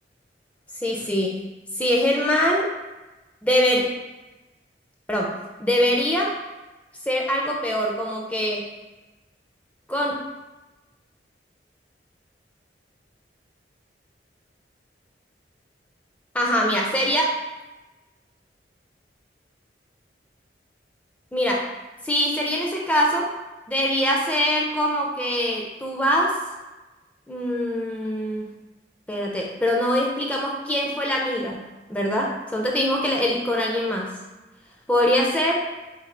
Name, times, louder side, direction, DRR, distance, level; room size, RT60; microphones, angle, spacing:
voice 1, 0.8-1.4 1.8-2.7 3.4-3.8 5.1-5.3 5.6-6.3 7.1-8.7 9.9-10.2 16.3-17.3 21.3-21.7 22.0-23.3 23.7-26.4 27.3-28.5 29.1-31.6 31.9-34.1 34.9-35.6, equal, 10° left, -1 dB, 0.4 m, -23 dB
3.4 x 3.3 x 3.7 m, 1.1 s
head